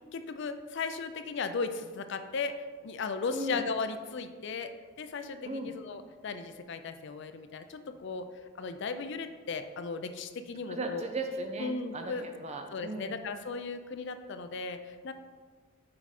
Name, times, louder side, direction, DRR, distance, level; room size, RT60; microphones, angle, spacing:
voice 1, 0.1-8.3 8.5-11.1 11.6-12.2 12.7-15.1, left 4 dB, 55° left, 9 dB, 0.4 m, -36 dB
voice 2, 10.7-13.1, right 2 dB, 30° right, 4 dB, 0.6 m, -36 dB
7.5 x 4.7 x 4.1 m, 1.5 s
head